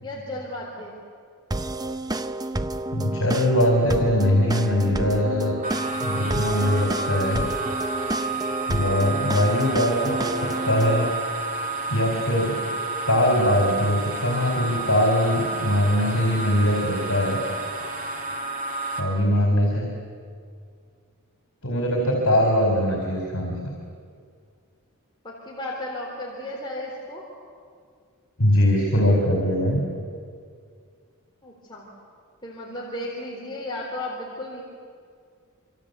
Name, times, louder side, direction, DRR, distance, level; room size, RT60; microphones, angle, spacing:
voice 1, 0.0-1.0 19.4-19.9 25.2-27.2 31.4-31.9 32.4-34.6, left 1 dB, 20° left, -4 dB, 3.9 m, -34 dB
sound 1, 1.5-11.1, right 2 dB, 15° right, 0.7 m, -30 dB
voice 2, 2.9-5.5 6.0-7.4 8.7-11.1 11.9-12.6 13.1-17.4 19.0-19.9 21.6-23.6 28.4-29.8, left 1 dB, 70° left, 1 dB, 4.5 m, -21 dB
sound 2, 5.6-19.0, right 3 dB, 35° right, 3.3 m, -30 dB
27.0 x 25.5 x 8.4 m, 2.2 s
head